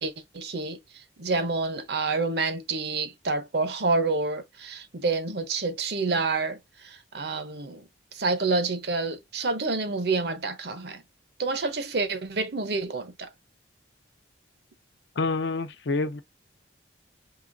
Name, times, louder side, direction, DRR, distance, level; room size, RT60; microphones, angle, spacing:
voice 1, 0.0-7.8 8.1-11.0 11.4-13.3, right 3 dB, 55° right, 0.7 m, -28 dB
voice 2, 15.2-16.2, left 3 dB, 65° left, 0.6 m, -27 dB
4.8 x 2.9 x 2.5 m
head